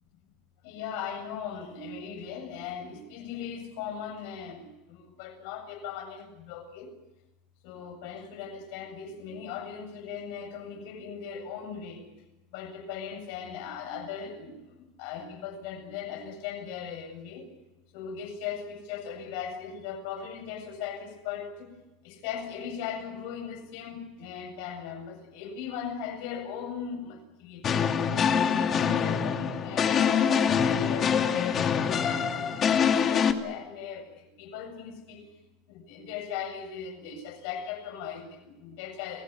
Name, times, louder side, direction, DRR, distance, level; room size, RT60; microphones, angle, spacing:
voice 1, 0.6-6.9 7.6-12.1 12.5-17.5 17.9-21.8 22.0-28.0 28.3-35.3 35.7-39.2, left 7 dB, 70° left, 7.5 m, -38 dB
sound 1, 27.6-33.3, left 7 dB, 35° left, 2.5 m, -25 dB
29.5 x 16.5 x 9.6 m
supercardioid pair, 110°, 0 cm